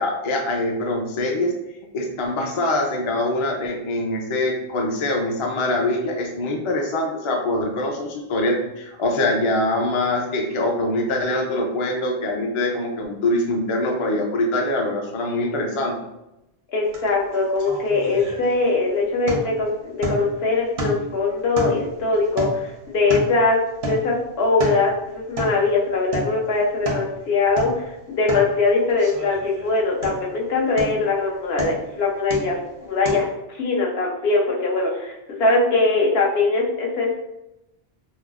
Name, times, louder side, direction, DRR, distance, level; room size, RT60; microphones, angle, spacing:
voice 1, 0.0-1.5 1.9-16.0, left 1 dB, 40° left, 1 dB, 0.4 m, -23 dB
voice 2, 16.7-37.2, left 3 dB, 75° left, -1 dB, 1.0 m, -21 dB
sound 1, 16.9-17.1 17.3-18.8 19.3-19.6 20.0-20.4 20.8-21.2 21.6-23.5 23.8-24.1 24.4-24.9 25.4-25.6 26.1-26.4 26.7-27.1 27.5-27.8 28.3-28.5 29.0-29.7 30.0-30.4 30.8-31.1 31.6-31.9 32.3-32.6 33.1-33.2, right 1 dB, 90° right, 1.0 m, -30 dB
4.9 x 2.0 x 2.4 m, 0.90 s
omnidirectional pair, 1.0 m